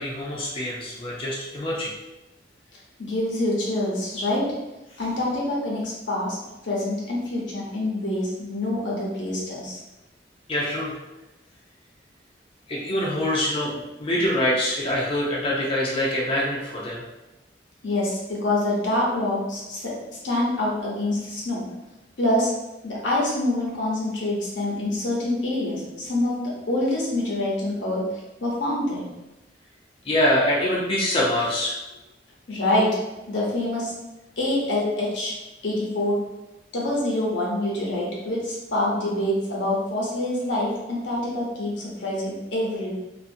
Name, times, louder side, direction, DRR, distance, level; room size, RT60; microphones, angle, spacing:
voice 1, 0.0-1.9 10.5-10.9 12.7-13.7 14.0-17.0 30.0-31.7, left 1 dB, 30° left, -5 dB, 0.4 m, -24 dB
voice 2, 3.1-4.4 5.0-6.4 6.6-9.8 17.8-19.8 20.2-21.6 22.2-22.5 22.8-26.4 26.7-28.0 28.4-29.1 32.5-32.9 33.3-33.9 34.4-35.3 35.6-36.2 36.7-42.9, left 1 dB, 80° left, -4 dB, 0.9 m, -26 dB
2.5 x 2.5 x 2.5 m, 0.98 s
head